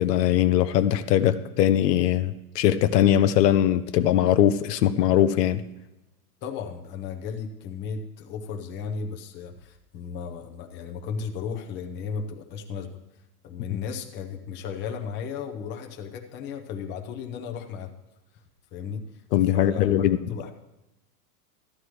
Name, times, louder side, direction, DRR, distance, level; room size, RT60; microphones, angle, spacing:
voice 1, 0.0-5.6 19.3-20.2, left 11 dB, 75° left, 11 dB, 0.8 m, -21 dB
voice 2, 6.4-12.9 13.4-17.9 18.7-19.0 19.5-20.5, left 6 dB, 20° left, 3 dB, 0.8 m, -35 dB
13.5 x 10.5 x 3.2 m, 0.95 s
supercardioid pair, 155°, 49 cm